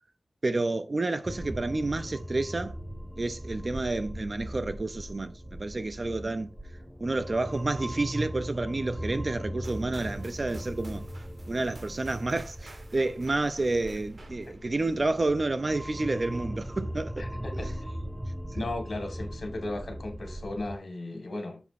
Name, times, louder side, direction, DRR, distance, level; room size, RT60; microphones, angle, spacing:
voice 1, 0.4-2.8 3.2-6.5 7.0-11.0 11.5-17.3 17.5-17.7 18.5-18.7, right 2 dB, 40° right, 0.6 m, -30 dB
sound 1, 1.2-20.8, equal, 10° right, 0.9 m, -39 dB
sound 2, 9.6-15.5, right 2 dB, 65° right, 1.6 m, -52 dB
voice 2, 17.2-18.0 18.5-21.6, left 2 dB, 70° left, 2.1 m, -36 dB
7.0 x 3.1 x 5.2 m
wide cardioid pair, 100°, 0 cm